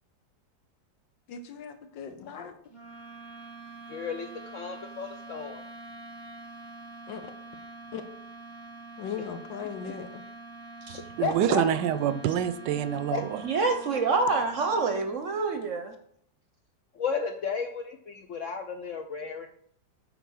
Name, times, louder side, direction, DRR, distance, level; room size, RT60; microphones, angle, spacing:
voice 1, 1.3-2.5 7.1-7.2 7.9-8.0 9.0-10.2, left 7 dB, 85° left, 1.7 m, -38 dB
sound 1, 2.7-15.4, right 2 dB, 20° left, 1.5 m, -45 dB
voice 2, 3.9-5.6 11.2-11.6 13.1-13.2 16.9-19.5, left 5 dB, 65° left, 0.7 m, -33 dB
voice 3, 11.2-13.4, right 9 dB, 80° right, 1.2 m, -26 dB
voice 4, 13.4-15.9, right 4 dB, 55° right, 0.9 m, -27 dB
9.1 x 4.3 x 6.2 m
omnidirectional pair, 1.9 m